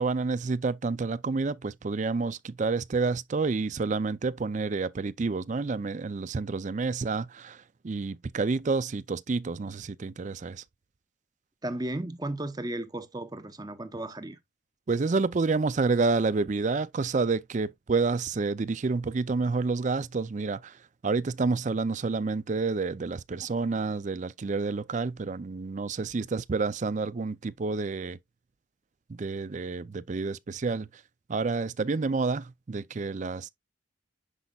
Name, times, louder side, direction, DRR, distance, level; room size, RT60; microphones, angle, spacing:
voice 1, 0.0-10.6 14.9-20.8 21.0-28.2 29.1-30.9 31.3-33.5, right 4 dB, 40° right, 0.4 m, -29 dB
voice 2, 11.6-14.4, right 1 dB, 20° right, 0.9 m, -34 dB
10.0 x 5.3 x 2.4 m
head